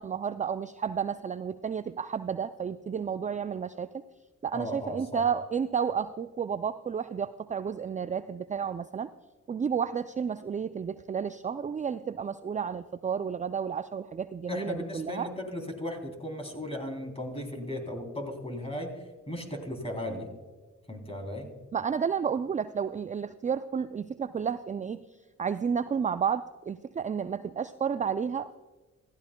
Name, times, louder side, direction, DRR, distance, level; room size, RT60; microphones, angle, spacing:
voice 1, 0.0-3.9 4.4-9.1 9.5-15.3 21.7-25.0 25.4-28.6, right 7 dB, 25° right, 13 dB, 0.4 m, -31 dB
voice 2, 4.5-5.2 14.5-18.9 19.3-20.3 20.9-21.5, left 1 dB, 20° left, 3 dB, 3.3 m, -36 dB
15.5 x 14.0 x 2.2 m, 1.3 s
supercardioid pair, 50°, 33 cm